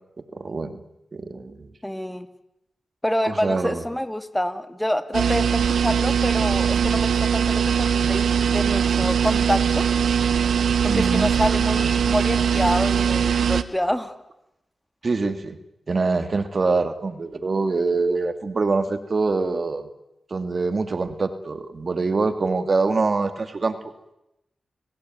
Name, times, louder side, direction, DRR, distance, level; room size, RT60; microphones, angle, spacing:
voice 1, 0.3-0.8 1.1-1.7 3.2-3.8 10.9-11.3 15.0-15.6 15.9-19.9 20.3-23.8, right 3 dB, 55° right, 9 dB, 2.5 m, -24 dB
voice 2, 1.8-2.3 3.0-9.8 10.9-14.1, equal, 10° left, 9 dB, 2.6 m, -27 dB
sound 1, 5.1-13.6, right 7 dB, 90° right, 1.2 m, -21 dB
30.0 x 19.0 x 9.5 m, 0.87 s
cardioid pair, 50°, 0 cm